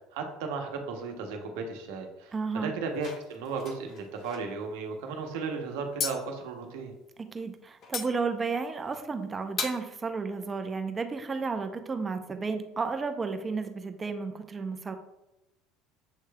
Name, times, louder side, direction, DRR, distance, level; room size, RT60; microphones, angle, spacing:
voice 1, 0.1-2.3 2.6-6.9, right 4 dB, 80° right, 3 dB, 0.8 m, -35 dB
voice 2, 2.3-2.7 7.2-14.9, right 4 dB, 25° right, 7 dB, 0.6 m, -32 dB
sound 1, 2.9-4.4 6.0-6.2 7.8-8.1 8.9-9.1 9.6-9.8, left 5 dB, 50° left, 0.7 m, -36 dB
7.4 x 3.2 x 2.3 m, 0.95 s
supercardioid pair, 95°, 0 cm